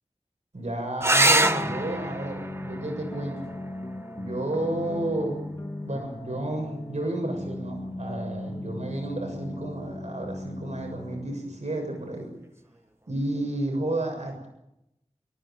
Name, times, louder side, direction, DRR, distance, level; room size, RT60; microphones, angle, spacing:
voice 1, 0.5-3.6 4.2-5.4 5.8-12.3 13.1-14.5, right 1 dB, 80° right, 2 dB, 6.8 m, -31 dB
sound 1, 1.0-6.0 7.9-8.6 12.0-12.1 12.4-12.5, right 1 dB, 20° right, 1.4 m, -27 dB
sound 2, 1.4-11.2, left 1 dB, 30° left, 1.7 m, -37 dB
29.5 x 16.0 x 9.0 m, 0.87 s
wide cardioid pair, 55°, 12 cm